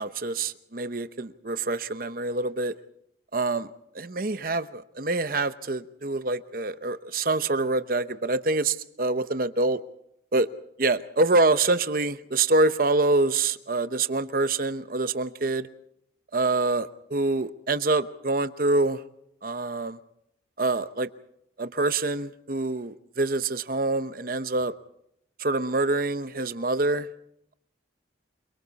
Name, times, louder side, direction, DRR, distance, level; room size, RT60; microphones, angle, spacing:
voice 1, 0.0-2.7 3.3-3.7 4.0-9.8 10.3-10.5 10.8-15.7 16.3-19.0 19.4-20.0 20.6-21.1 21.6-24.7 25.4-27.1, right 2 dB, 50° right, 0.9 m, -26 dB
28.5 x 24.0 x 4.1 m
head